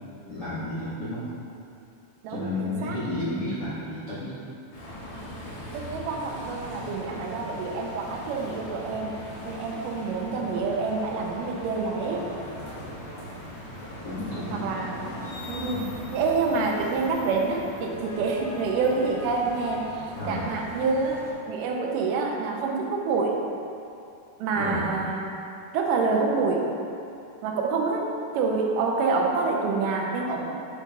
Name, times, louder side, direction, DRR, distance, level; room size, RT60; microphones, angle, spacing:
voice 1, 0.3-1.2 2.3-4.3 14.0-15.1 15.6-15.9 20.2-20.5 24.6-24.9, left 2 dB, 90° left, -11 dB, 0.9 m, -32 dB
voice 2, 2.2-3.0 5.7-9.1 9.5-12.2 14.5-23.4 24.4-25.3 25.7-26.6 27.4-28.1 28.3-30.5, right 4 dB, 85° right, 0 dB, 2.3 m, -27 dB
sound 1, 4.7-21.3, left 1 dB, 65° left, 2.4 m, -40 dB
8.8 x 5.2 x 2.6 m, 2.7 s
omnidirectional pair, 3.8 m